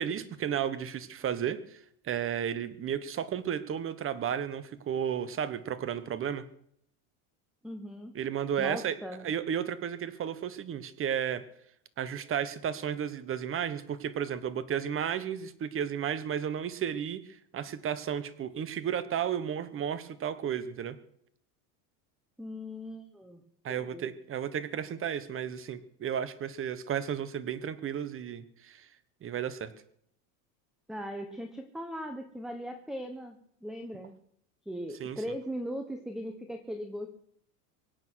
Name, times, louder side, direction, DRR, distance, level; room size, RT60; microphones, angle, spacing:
voice 1, 0.0-6.4 8.1-8.9 9.2-11.4 12.0-21.0 23.6-28.9 29.2-29.7 35.0-35.2, right 8 dB, 30° right, 14 dB, 1.3 m, -33 dB
voice 2, 7.6-8.1 8.6-9.3 22.4-23.4 23.7-24.1 30.9-34.1 34.7-37.1, equal, ahead, 7 dB, 1.2 m, -39 dB
23.5 x 8.9 x 6.3 m, 0.69 s
supercardioid pair, 135°, 44 cm